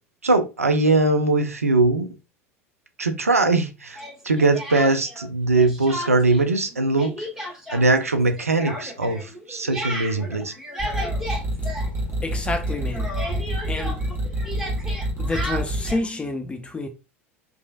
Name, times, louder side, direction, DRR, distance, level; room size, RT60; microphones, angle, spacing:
voice 1, 0.2-2.1 3.0-4.0 4.2-7.3 7.7-10.5, right 2 dB, 90° right, 0.4 m, -21 dB
Speech, 3.9-5.3 5.6-6.4 6.7-12.4 12.7-16.1, equal, 5° right, 1.3 m, -34 dB
sound 1, 10.8-15.9, right 1 dB, 30° right, 1.4 m, -27 dB
voice 2, 12.2-13.2 13.7-14.0 15.2-16.9, left 2 dB, 15° left, 0.6 m, -29 dB
3.0 x 2.4 x 2.3 m
figure-of-eight pair, 75°, 8 cm